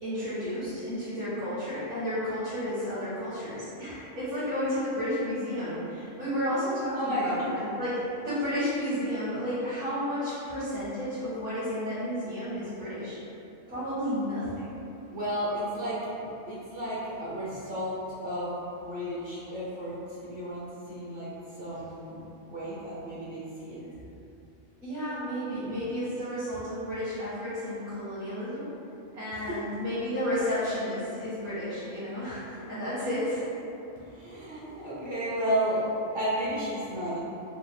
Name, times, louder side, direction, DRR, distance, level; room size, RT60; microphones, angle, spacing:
voice 1, 0.0-13.2 13.7-14.7 24.8-28.7 29.1-33.4, equal, 75° right, -16 dB, 2.0 m, -32 dB
voice 2, 6.9-7.5 15.1-21.3 21.6-22.2 22.5-23.8 29.3-29.5 34.0-37.2, equal, 55° right, -8 dB, 0.8 m, -32 dB
4.4 x 2.5 x 3.6 m, 2.9 s
omnidirectional pair, 1.3 m